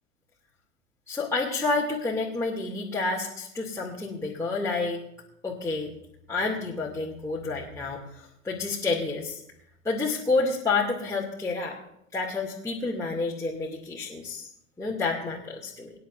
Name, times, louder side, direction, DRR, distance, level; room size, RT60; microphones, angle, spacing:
voice 1, 1.1-5.0 5.4-5.9 6.3-9.4 9.8-11.8 12.1-14.4 14.8-15.9, left 3 dB, 10° left, -5 dB, 2.4 m, -29 dB
24.5 x 10.5 x 2.6 m, 0.76 s
figure-of-eight pair, 90°, 39 cm